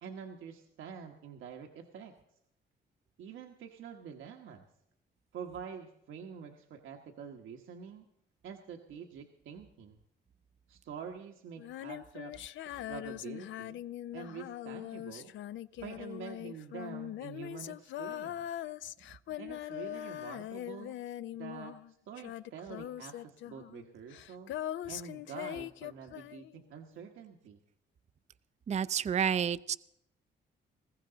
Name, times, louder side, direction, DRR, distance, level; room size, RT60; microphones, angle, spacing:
voice 1, 0.0-2.1 3.2-4.7 5.3-8.0 8.4-10.0 10.7-12.3 12.7-13.8 14.1-15.3 15.8-18.5 19.4-21.0 21.3-24.5 24.9-27.6, right 7 dB, 80° right, 2 dB, 1.3 m, -46 dB
Female singing, 11.6-21.9 22.2-26.6, left 13 dB, 75° left, 0.5 m, -41 dB
voice 2, 28.7-29.7, right 8 dB, 35° right, 15 dB, 0.5 m, -30 dB
20.5 x 15.5 x 3.9 m, 0.78 s
cardioid pair, 90°, 20 cm